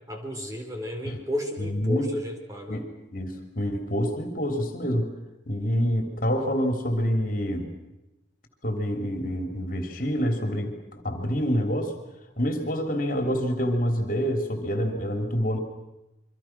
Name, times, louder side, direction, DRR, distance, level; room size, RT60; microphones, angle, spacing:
voice 1, 0.1-2.8, left 1 dB, 20° right, 3 dB, 3.8 m, -32 dB
voice 2, 1.6-2.1 2.7-5.1 5.5-7.7 8.6-12.0 12.4-15.6, equal, 45° left, 5 dB, 3.3 m, -27 dB
28.5 x 24.5 x 6.1 m, 0.95 s
head